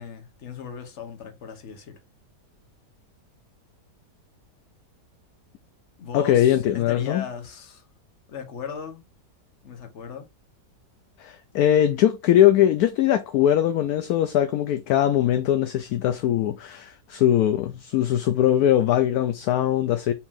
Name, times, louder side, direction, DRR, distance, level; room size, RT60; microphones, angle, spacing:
voice 1, 0.0-2.0 6.0-7.9 8.3-9.1 9.6-10.3, left 7 dB, 45° left, 1.2 m, -37 dB
voice 2, 6.1-7.2 11.2-20.1, left 11 dB, 70° left, 1.0 m, -21 dB
4.5 x 2.9 x 3.6 m
omnidirectional pair, 1.8 m